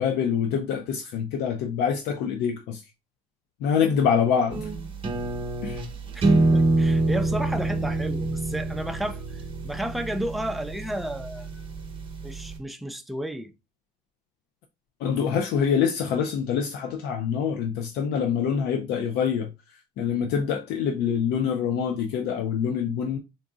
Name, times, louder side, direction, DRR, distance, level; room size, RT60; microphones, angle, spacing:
voice 1, 0.0-2.8 3.6-4.7 5.6-5.8 15.0-19.5 20.0-23.2, left 7 dB, 80° left, 0.4 m, -25 dB
sound 1, 4.5-12.6, right 2 dB, 30° right, 0.8 m, -26 dB
voice 2, 6.1-11.6 12.2-13.5, right 1 dB, ahead, 0.3 m, -32 dB
3.8 x 2.6 x 2.3 m
cardioid pair, 110°, 17 cm